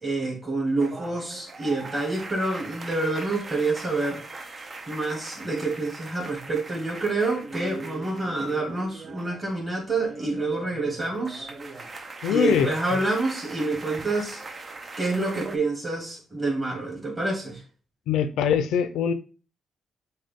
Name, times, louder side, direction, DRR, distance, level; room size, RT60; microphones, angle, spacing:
voice 1, 0.0-4.2 4.9-11.5 12.3-14.4 15.0-17.6, right 2 dB, 25° right, -2 dB, 2.4 m, -27 dB
sound 1, 0.8-9.5 9.8-15.6, right 3 dB, 40° right, 0.6 m, -40 dB
voice 2, 12.2-12.7 18.1-19.1, left 8 dB, 85° left, 10 dB, 0.5 m, -22 dB
6.5 x 2.3 x 3.6 m, 0.35 s
cardioid pair, 75°, 0 cm